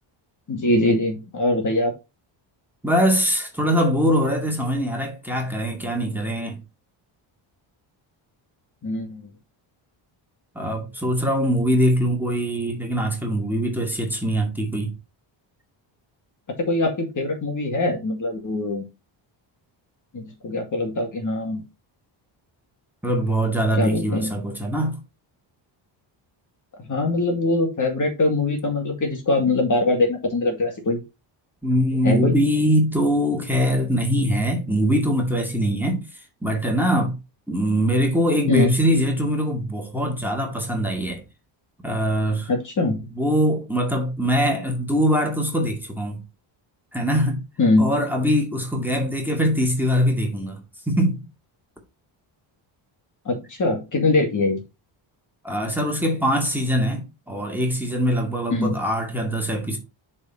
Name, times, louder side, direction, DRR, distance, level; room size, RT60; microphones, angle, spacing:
voice 1, 0.5-1.9 8.8-9.2 16.6-18.8 20.1-21.6 23.8-24.3 26.9-31.0 32.0-32.3 38.5-38.7 42.5-43.0 47.6-47.9 53.3-54.6 58.5-58.8, left 2 dB, 40° left, 2.2 m, -22 dB
voice 2, 2.8-6.6 10.6-14.9 23.0-24.9 31.6-36.0 36.4-37.2 37.5-41.2 41.8-42.5 43.1-46.2 46.9-47.4 47.8-50.6 50.9-51.2 55.4-59.8, equal, 5° right, 2.1 m, -22 dB
6.7 x 4.3 x 4.4 m
cardioid pair, 120°, 48 cm